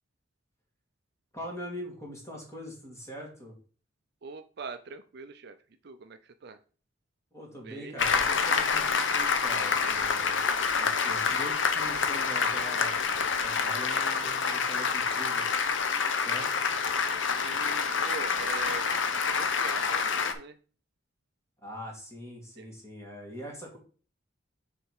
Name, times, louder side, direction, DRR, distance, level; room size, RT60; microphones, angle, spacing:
voice 1, 1.3-3.6 7.3-10.4 10.8-13.0 13.4-15.4 16.1-16.7 21.6-23.8, equal, 15° left, -1 dB, 2.3 m, -42 dB
voice 2, 4.2-5.6 5.8-6.6 7.6-8.0 17.4-20.6 22.6-22.7, right 5 dB, 55° right, 10 dB, 0.5 m, -42 dB
Applause, 8.0-20.3, left 5 dB, 70° left, 0.8 m, -27 dB
6.6 x 4.2 x 4.8 m, 0.40 s
head